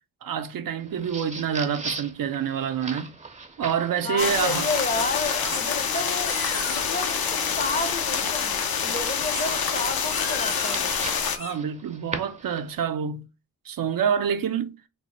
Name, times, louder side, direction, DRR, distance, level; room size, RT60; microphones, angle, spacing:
voice 1, 0.2-3.2 3.6-4.7 5.4-5.6 11.4-13.3 13.6-14.8, right 7 dB, 65° right, 0.5 m, -27 dB
sound 1, 0.8-12.8, right 3 dB, 20° right, 0.5 m, -40 dB
voice 2, 4.0-6.4 6.6-10.9, left 3 dB, 25° left, 0.6 m, -31 dB
sound 2, 4.2-11.4, left 6 dB, 70° left, 0.7 m, -26 dB
sound 3, 5.5-5.9 6.1-7.1 9.3-11.5, left 3 dB, 90° left, 1.6 m, -36 dB
3.4 x 2.1 x 4.0 m
cardioid pair, 75°, 37 cm